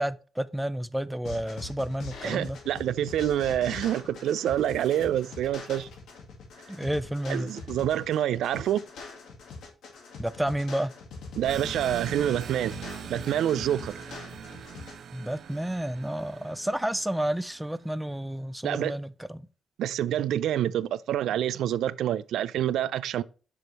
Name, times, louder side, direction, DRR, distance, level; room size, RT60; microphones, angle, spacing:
voice 1, 0.0-2.6 6.7-7.5 10.2-10.9 15.1-19.5, right 1 dB, 5° right, 0.4 m, -30 dB
sound 1, 1.3-14.9, left 4 dB, 85° left, 1.9 m, -42 dB
voice 2, 2.2-5.9 7.3-8.8 11.4-12.7 13.1-13.9 18.6-19.0 19.8-23.2, right 11 dB, 90° right, 0.3 m, -27 dB
sound 2, 11.5-17.7, right 8 dB, 65° right, 0.8 m, -41 dB
6.2 x 5.1 x 4.1 m
cardioid pair, 125°, 0 cm